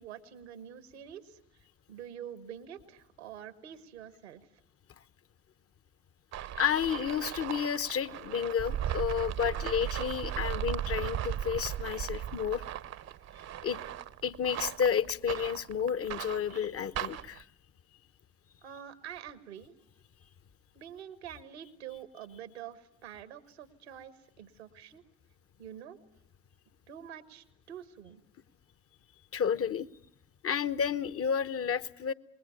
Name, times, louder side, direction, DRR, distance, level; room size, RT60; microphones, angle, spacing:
voice 1, 0.0-4.4 18.6-19.8 20.7-25.0 25.6-26.0 26.9-28.2, right 9 dB, 85° right, 14 dB, 1.4 m, -46 dB
sound 1, 6.3-17.4, right 11 dB, 55° right, 0.9 m, -37 dB
voice 2, 6.5-12.6 13.6-13.8 14.2-17.5 29.3-29.9 30.4-32.1, left 7 dB, 45° left, 16 dB, 1.1 m, -31 dB
27.0 x 21.0 x 6.8 m, 0.72 s
hypercardioid pair, 50°, 31 cm